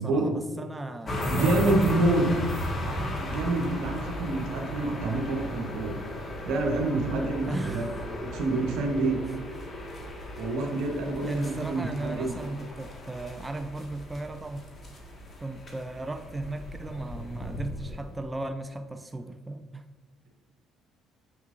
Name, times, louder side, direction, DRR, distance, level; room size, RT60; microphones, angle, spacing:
voice 1, 0.0-2.4 2.7-2.9 7.5-8.1 9.3-9.4 10.9-14.7 15.4-19.8, right 2 dB, 15° right, 8 dB, 0.4 m, -36 dB
sound 1, 1.1-18.3, left 1 dB, 40° left, 1.6 m, -36 dB
voice 2, 1.3-2.3 3.2-5.9 6.4-7.9 8.3-9.2 10.4-12.3, right 2 dB, 70° right, 3 dB, 1.1 m, -27 dB
7.2 x 6.0 x 2.5 m, 1.4 s
hypercardioid pair, 50°, 0 cm